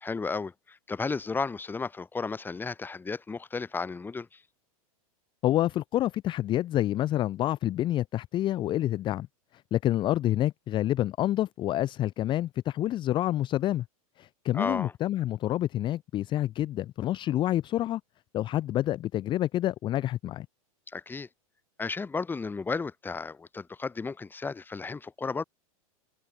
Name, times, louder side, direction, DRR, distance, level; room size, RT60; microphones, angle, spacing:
voice 1, 0.0-4.4 14.5-14.9 20.9-21.3 21.8-25.4, left 4 dB, 10° left, 0.8 m, -33 dB
voice 2, 5.4-9.3 9.5-13.9 14.2-18.0 18.3-20.5, left 13 dB, 25° left, 0.4 m, -28 dB
hypercardioid pair, 110°, 19 cm